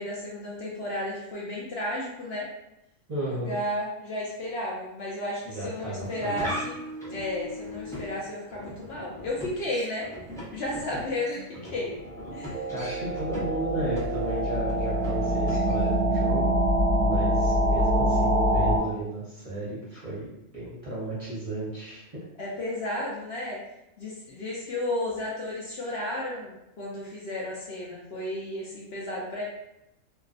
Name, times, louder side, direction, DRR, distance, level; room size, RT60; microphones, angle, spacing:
voice 1, 0.0-2.5 3.3-6.8 7.1-10.1 10.5-11.4 11.7-11.9 12.3-12.6 22.4-23.6 24.0-29.4, left 1 dB, 65° left, -4 dB, 0.7 m, -33 dB
voice 2, 3.1-3.6 5.5-6.6 11.3-11.4 12.7-16.5 17.0-20.3 20.5-22.2, right 1 dB, 35° right, -9 dB, 0.7 m, -34 dB
sound 1, 6.0-16.0, equal, 5° left, 0.5 m, -40 dB
sound 2, 12.1-18.8, equal, 85° right, 1.0 m, -25 dB
2.5 x 2.3 x 2.4 m, 0.85 s
omnidirectional pair, 1.3 m